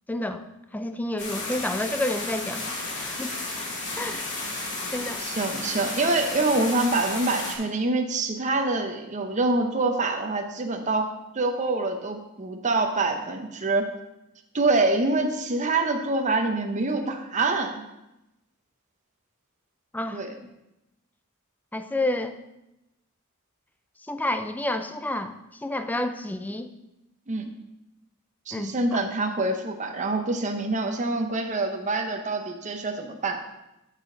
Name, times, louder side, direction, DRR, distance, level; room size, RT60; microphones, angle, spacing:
voice 1, 0.1-0.4 0.7-3.3 3.9-4.3 4.9-5.2 19.9-20.2 21.7-22.4 24.1-25.3 25.6-26.7 28.5-28.7, left 1 dB, 10° left, 9 dB, 0.4 m, -29 dB
sound 1, 1.2-7.5, left 2 dB, 55° left, 2.4 m, -33 dB
voice 2, 5.2-11.1 11.3-13.9 14.5-17.8 20.1-20.3 27.3-27.5 28.5-33.4, right 2 dB, 35° right, 4 dB, 0.7 m, -25 dB
12.5 x 5.0 x 3.8 m, 0.92 s
head